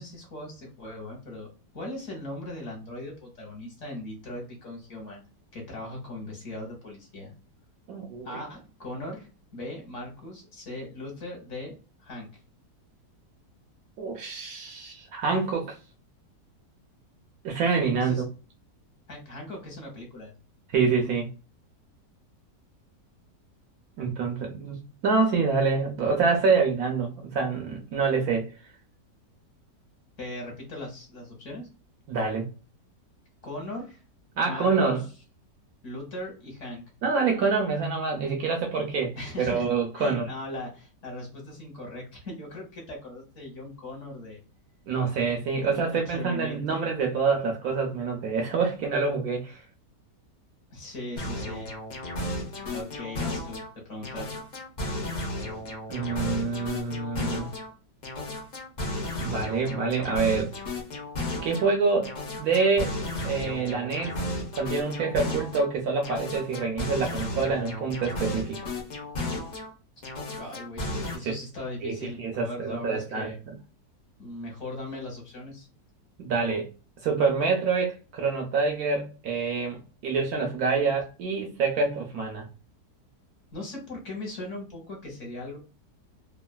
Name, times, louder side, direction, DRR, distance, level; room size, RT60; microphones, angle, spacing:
voice 1, 0.0-1.5 1.7-5.2 5.5-7.3 8.2-11.7 12.0-12.3 17.9-18.2 19.1-20.3 30.2-31.7 33.4-34.0 34.5-35.0 35.8-36.8 39.2-39.7 39.9-44.4 45.6-46.6 50.7-51.7 52.7-54.4 70.4-73.4 74.2-75.7 83.5-85.6, left 1 dB, 50° left, 1.2 m, -39 dB
voice 2, 7.9-8.3 14.0-15.8 17.4-18.3 20.7-21.3 24.0-28.5 32.1-32.4 34.4-35.0 37.0-40.3 44.9-49.6 55.9-57.5 59.2-60.5 61.4-62.1 62.4-62.9 63.2-64.1 64.5-68.6 71.2-71.4 71.8-73.5 76.2-76.7 77.0-82.5, right 4 dB, 70° right, 0.9 m, -26 dB
sound 1, 51.2-53.7 54.0-57.7 58.0-61.7 62.0-65.7 66.0-69.7 70.0-71.1, left 1 dB, 70° left, 0.4 m, -34 dB
3.1 x 2.3 x 2.2 m
omnidirectional pair, 1.9 m